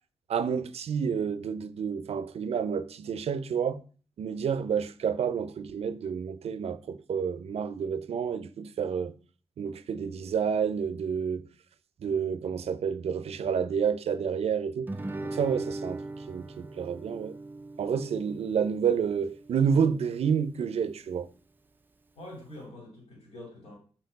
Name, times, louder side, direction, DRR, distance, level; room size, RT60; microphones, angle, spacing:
voice 1, 0.3-3.8 4.2-9.1 9.6-11.5 12.0-14.9 15.2-16.0 16.3-17.3 17.8-21.3, right 7 dB, 80° right, 0.5 m, -29 dB
Guitar, 14.9-19.9, right 2 dB, 20° right, 0.4 m, -40 dB
voice 2, 22.1-23.8, left 1 dB, 75° left, 2.7 m, -45 dB
6.5 x 4.5 x 4.0 m
wide cardioid pair, 175°, 10 cm